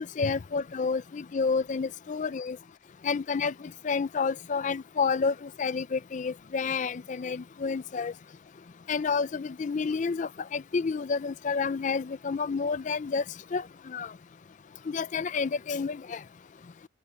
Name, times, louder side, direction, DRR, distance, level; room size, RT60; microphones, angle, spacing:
voice 1, 0.2-2.6 3.0-3.5 3.8-8.1 8.9-13.2 13.5-13.6 13.9-14.1 14.9-16.2, left 5 dB, 40° left, 0.4 m, -29 dB
head